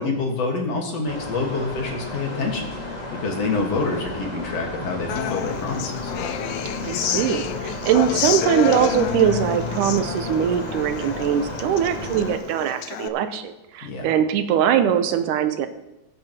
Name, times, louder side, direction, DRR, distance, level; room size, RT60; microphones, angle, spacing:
voice 1, 0.0-2.7 3.1-6.1 13.8-14.1, left 3 dB, 55° left, 1 dB, 2.7 m, -27 dB
sound 1, 1.0-12.4, left 1 dB, 15° left, 1.5 m, -33 dB
Human voice / Acoustic guitar, 5.1-13.1, left 11 dB, 80° left, 1.7 m, -29 dB
voice 2, 6.8-15.7, right 9 dB, 80° right, 9 dB, 2.3 m, -22 dB
21.0 x 9.8 x 3.0 m, 0.95 s
omnidirectional pair, 3.7 m